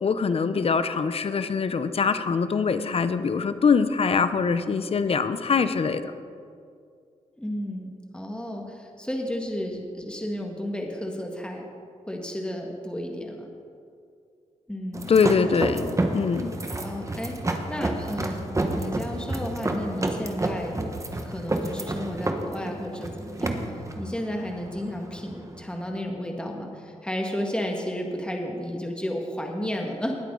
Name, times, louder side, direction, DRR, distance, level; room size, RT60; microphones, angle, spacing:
voice 1, 0.0-6.0 15.1-16.5, left 5 dB, 50° left, 12 dB, 0.7 m, -23 dB
voice 2, 7.4-11.7 12.1-13.5 14.7-15.1 16.8-17.3 17.7-20.8 21.2-23.6 24.0-30.1, equal, 5° left, 1 dB, 1.8 m, -32 dB
sound 1, 14.9-25.6, right 2 dB, 25° right, 1.3 m, -30 dB
19.5 x 8.3 x 3.9 m, 2.3 s
cardioid pair, 70°, 13 cm